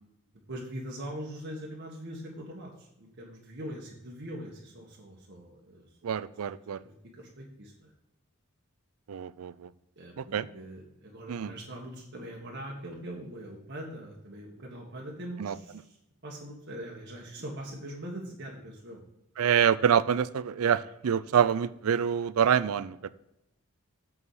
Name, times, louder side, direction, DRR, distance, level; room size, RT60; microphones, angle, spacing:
voice 1, 0.5-5.9 6.4-6.5 6.8-7.9 10.0-15.9 16.2-19.0, right 1 dB, 55° right, -2 dB, 1.5 m, -42 dB
voice 2, 6.0-6.8 9.1-9.7 10.2-10.5 11.3-11.5 15.4-15.6 19.4-23.1, right 8 dB, 80° right, 17 dB, 0.4 m, -26 dB
8.1 x 4.9 x 6.3 m, 0.88 s
head